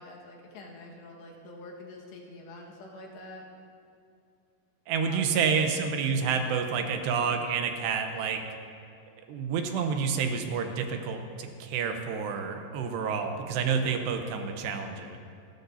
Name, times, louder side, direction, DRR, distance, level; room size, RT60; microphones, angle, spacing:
voice 1, 0.0-3.4 5.0-5.3, left 2 dB, 80° left, -2 dB, 3.8 m, -46 dB
voice 2, 4.9-8.4 9.3-15.2, right 6 dB, 80° right, 5 dB, 3.1 m, -29 dB
28.5 x 12.0 x 2.8 m, 2.5 s
omnidirectional pair, 4.9 m